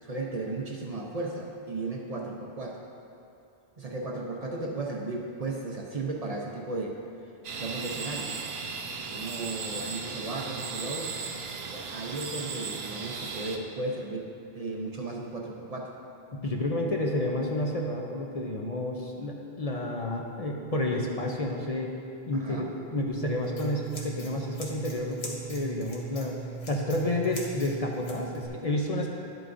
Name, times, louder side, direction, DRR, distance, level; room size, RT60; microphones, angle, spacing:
voice 1, 0.0-2.8 3.8-7.0 7.6-8.4 9.1-11.1 11.7-15.9 22.3-22.7, right 2 dB, 45° right, -1 dB, 0.7 m, -35 dB
sound 1, 7.4-13.6, right 5 dB, 80° right, 0.9 m, -36 dB
voice 2, 16.3-21.9 22.3-22.7 22.9-26.3 26.7-29.1, left 1 dB, 40° left, -1 dB, 0.7 m, -30 dB
Scissors, 23.1-28.5, right 4 dB, 85° left, 1.4 m, -39 dB
11.0 x 7.8 x 2.6 m, 2.7 s
omnidirectional pair, 1.0 m